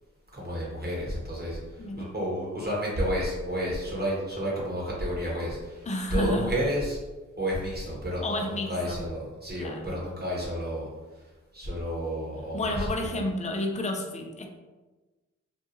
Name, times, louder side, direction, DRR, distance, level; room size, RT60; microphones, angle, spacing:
voice 1, 0.3-7.0 7.4-10.9 11.5-13.2, equal, 30° right, -5 dB, 1.1 m, -31 dB
voice 2, 1.8-2.1 5.9-6.5 8.2-9.0 9.5-10.1 12.5-14.5, left 1 dB, 20° left, 3 dB, 0.5 m, -31 dB
2.5 x 2.3 x 2.8 m, 1.2 s
supercardioid pair, 40°, 32 cm